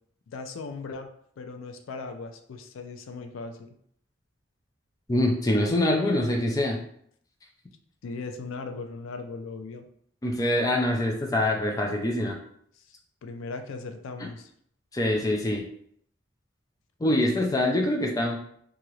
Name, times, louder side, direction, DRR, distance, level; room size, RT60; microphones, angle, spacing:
voice 1, 0.3-1.1 1.4-3.8 8.0-9.9 12.8-12.9 13.2-14.5, left 3 dB, 85° left, 7 dB, 0.4 m, -38 dB
voice 2, 5.1-6.8 10.2-12.4 14.9-15.6 17.0-18.4, left 1 dB, 20° left, 0 dB, 0.4 m, -24 dB
2.8 x 2.4 x 3.0 m, 0.66 s
head